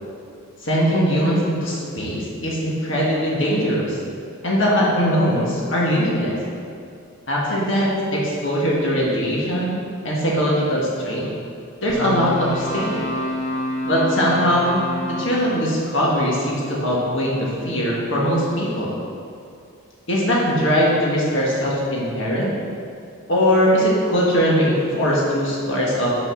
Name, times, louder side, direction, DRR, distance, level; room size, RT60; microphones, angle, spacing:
voice 1, 0.6-4.0 4.4-6.3 7.3-9.8 10.0-11.3 11.8-12.9 13.8-18.9 20.1-22.5 23.3-26.2, equal, 60° left, -5 dB, 1.7 m, -21 dB
sound 1, 11.9-18.1, left 1 dB, 30° left, 1.3 m, -30 dB
6.8 x 5.9 x 6.4 m, 2.4 s
head